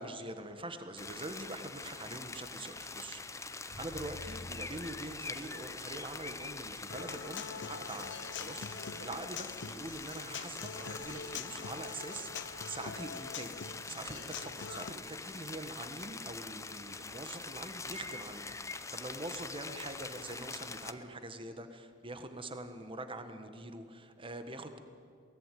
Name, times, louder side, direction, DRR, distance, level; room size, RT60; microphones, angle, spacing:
voice 1, 0.0-13.5 13.9-24.8, right 2 dB, 25° right, 8 dB, 1.5 m, -44 dB
sound 1, 1.0-20.9, left 4 dB, 15° left, 0.8 m, -44 dB
Bowed string instrument, 3.7-9.8, equal, 85° right, 5.2 m, -53 dB
Human voice / Acoustic guitar, 6.9-14.9, left 6 dB, 65° left, 0.8 m, -44 dB
22.5 x 18.0 x 9.3 m, 2.2 s
head